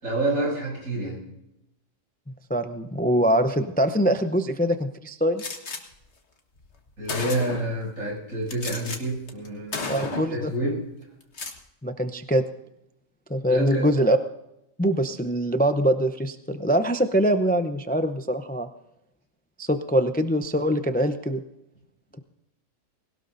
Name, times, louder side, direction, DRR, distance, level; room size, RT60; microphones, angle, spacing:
voice 1, 0.0-1.2 7.0-10.8 13.5-13.9, right 1 dB, 85° right, -3 dB, 7.7 m, -28 dB
voice 2, 2.5-5.4 9.9-10.5 11.8-12.4 13.3-14.2 14.8-18.7 19.6-21.4, right 1 dB, 10° left, 8 dB, 0.5 m, -23 dB
Gunshot gunfire, 5.4-5.8 6.6-6.7 7.1-7.8 8.5-9.0 9.3-9.5 9.7-10.4 11.2-11.6, left 4 dB, 55° left, 1.8 m, -33 dB
20.5 x 18.0 x 2.7 m, 0.86 s
omnidirectional pair, 1.4 m